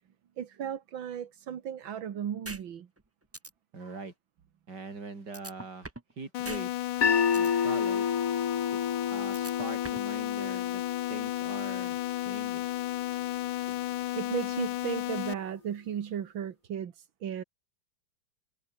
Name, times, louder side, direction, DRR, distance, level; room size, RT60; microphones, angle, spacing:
voice 1, 0.4-2.9 13.7-13.8 14.2-17.4, right 9 dB, 90° right, 2.2 m, -35 dB
sound 1, 2.4-2.6 3.0-3.1 3.3-3.5 5.3-6.1 6.4-6.6 7.0-7.5 9.3-10.1, right 2 dB, 15° right, 0.5 m, -41 dB
voice 2, 3.7-4.1 4.7-5.9 6.2-6.8 7.3-8.1 8.9-10.8 11.1-12.7, right 3 dB, 60° right, 4.7 m, -42 dB
sound 2, 6.3-15.3, left 15 dB, 85° left, 1.4 m, -33 dB
sound 3, 7.0-13.2, left 7 dB, 50° left, 1.8 m, -31 dB
omnidirectional pair, 2.1 m